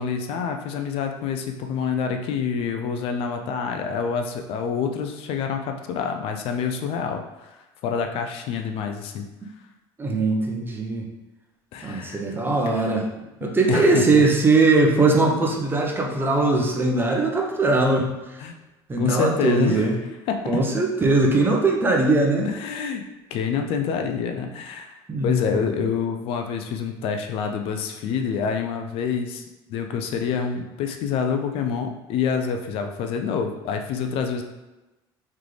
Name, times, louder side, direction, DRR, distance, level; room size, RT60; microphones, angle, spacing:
voice 1, 0.0-9.3 11.7-12.4 12.7-12.9 13.7-14.2 18.4-18.6 19.0-19.9 20.3-20.6 22.4-23.0 23.3-29.4 29.7-34.4, left 6 dB, 65° left, 5 dB, 0.5 m, -27 dB
voice 2, 10.0-11.1 11.8-13.1 13.4-18.4 18.9-20.0 20.5-22.5 25.1-25.5, right 3 dB, 20° right, 0 dB, 0.8 m, -20 dB
3.7 x 3.3 x 3.2 m, 1.0 s
supercardioid pair, 95°, 10 cm